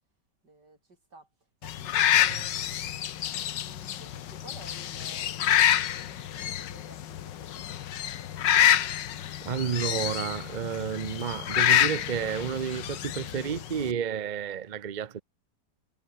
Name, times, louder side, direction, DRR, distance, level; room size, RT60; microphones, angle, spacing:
voice 1, 0.4-0.8 1.1-1.3 1.6-7.8, right 2 dB, 70° right, 6.9 m, -53 dB
sound 1, 1.6-13.9, left 11 dB, 85° left, 1.7 m, -27 dB
voice 2, 9.5-15.2, right 7 dB, 50° right, 0.5 m, -31 dB
omnidirectional pair, 1.9 m